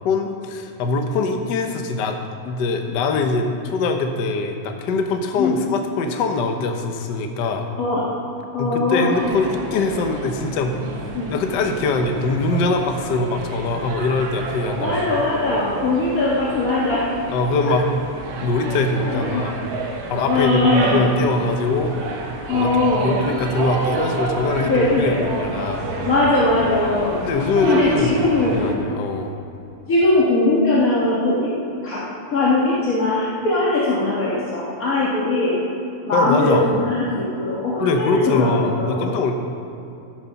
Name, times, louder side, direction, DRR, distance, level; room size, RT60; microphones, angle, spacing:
voice 1, 0.0-2.2 2.4-7.7 8.6-10.8 11.3-15.0 17.3-17.8 18.4-19.5 20.1-22.0 22.5-25.8 27.2-28.2 28.5-29.3 36.1-36.7 37.8-39.3, left 3 dB, 80° left, 4 dB, 0.9 m, -22 dB
voice 2, 5.4-5.7 7.8-8.1 8.5-9.2 11.1-11.3 14.8-17.0 17.6-17.8 19.0-19.5 20.2-21.1 22.5-23.2 24.6-25.2 26.0-27.2 27.6-28.7 29.9-31.5 31.8-32.0 32.3-35.6 36.1-39.1, left 2 dB, 40° left, -7 dB, 1.5 m, -20 dB
sound 1, 9.1-28.8, right 3 dB, 75° right, 2.6 m, -30 dB
14.0 x 8.1 x 5.8 m, 2.7 s
omnidirectional pair, 3.3 m